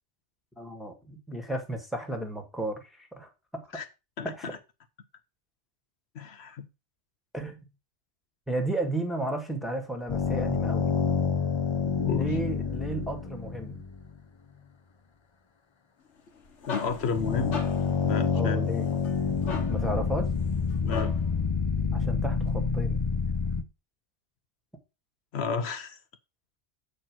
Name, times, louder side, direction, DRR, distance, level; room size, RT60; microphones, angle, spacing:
voice 1, 0.6-3.7 4.2-4.5 7.3-7.6 8.5-10.9 12.1-13.8 18.3-18.9 19.7-20.3 21.9-23.0 23.6-23.7, right 2 dB, ahead, 1.5 m, -33 dB
voice 2, 4.2-4.6 6.1-6.7 11.8-12.3 16.7-17.6 18.1-18.6 20.8-21.1 25.3-26.0, left 5 dB, 70° left, 1.0 m, -31 dB
sound 1, 10.1-14.2 16.9-23.6, left 5 dB, 35° left, 0.5 m, -28 dB
sound 2, 16.2-21.4, left 5 dB, 90° left, 1.6 m, -40 dB
7.9 x 4.4 x 5.9 m
omnidirectional pair, 1.2 m